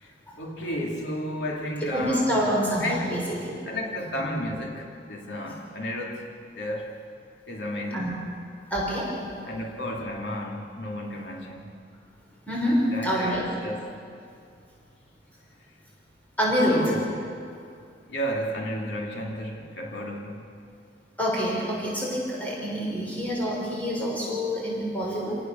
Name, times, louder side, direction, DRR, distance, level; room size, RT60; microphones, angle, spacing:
voice 1, 0.0-2.5 2.8-3.2 3.6-6.9 7.5-8.2 9.4-11.8 12.9-13.9 16.7-17.2 18.1-20.6, equal, 90° left, 0 dB, 2.7 m, -33 dB
voice 2, 1.9-3.6 7.9-8.1 8.7-9.1 12.5-13.4 16.4-16.8 21.2-25.4, equal, 10° left, -5 dB, 6.2 m, -26 dB
29.5 x 18.5 x 7.0 m, 2.3 s
head